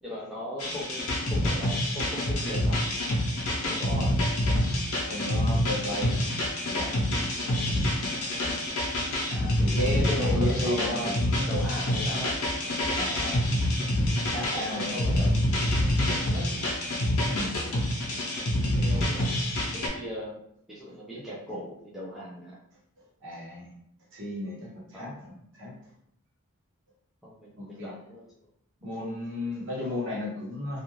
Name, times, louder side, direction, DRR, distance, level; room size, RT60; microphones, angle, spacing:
voice 1, 0.0-2.9 3.5-4.2 7.1-7.3 9.3-11.2 11.5-12.4 14.5-16.7 18.4-19.3 19.7-20.4 20.7-22.6 24.9-25.2 27.2-28.3 28.8-29.0, equal, ahead, -8 dB, 0.5 m, -38 dB
sound 1, 0.6-19.9, left 1 dB, 80° left, 0.7 m, -27 dB
voice 2, 5.0-6.3 6.6-7.0 9.6-11.8 13.0-13.4 14.3-15.0 17.2-17.5 23.2-23.7 24.1-25.7 27.6-27.9 28.8-30.8, left 1 dB, 55° right, -4 dB, 1.0 m, -34 dB
2.4 x 2.4 x 3.0 m, 0.73 s
head